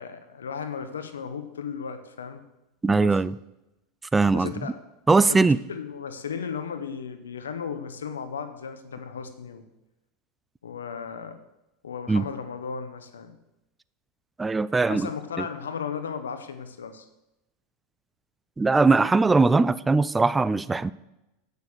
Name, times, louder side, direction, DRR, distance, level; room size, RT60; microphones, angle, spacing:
voice 1, 0.0-2.4 3.0-3.2 4.3-4.7 5.2-9.6 10.6-11.4 11.8-13.4 14.8-17.1, left 6 dB, 90° left, 10 dB, 0.8 m, -35 dB
voice 2, 2.8-3.4 4.1-4.5 5.1-5.6 12.1-12.2 14.4-15.1 18.6-20.9, right 3 dB, 15° right, 17 dB, 0.3 m, -20 dB
9.4 x 6.6 x 6.4 m, 0.92 s
hypercardioid pair, 95°, 0 cm